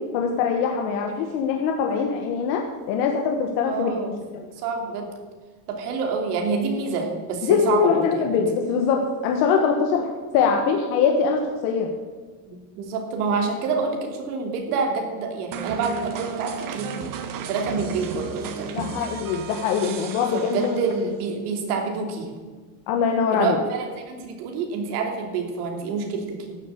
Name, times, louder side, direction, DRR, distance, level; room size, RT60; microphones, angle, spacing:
voice 1, 0.1-4.4 7.4-11.9 18.7-20.8 22.9-23.6, left 6 dB, 70° left, 2 dB, 1.6 m, -23 dB
voice 2, 3.6-4.1 4.4-5.1 5.7-8.5 12.5-17.0 17.4-18.8 20.3-22.3 23.3-26.6, right 4 dB, 85° right, 3 dB, 2.9 m, -27 dB
sound 1, 15.5-21.2, right 6 dB, 45° right, 1.6 m, -34 dB
13.0 x 7.7 x 8.4 m, 1.5 s
supercardioid pair, 100°, 44 cm